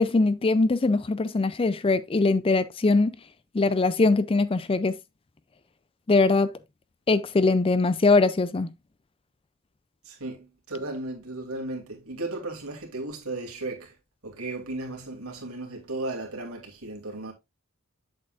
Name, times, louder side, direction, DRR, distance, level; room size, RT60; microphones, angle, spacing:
voice 1, 0.0-3.1 3.5-5.0 6.1-6.5 7.1-8.7, left 3 dB, 25° left, 0.4 m, -22 dB
voice 2, 10.0-14.0 14.2-17.3, right 2 dB, 75° right, 2.7 m, -35 dB
7.8 x 7.7 x 2.5 m
head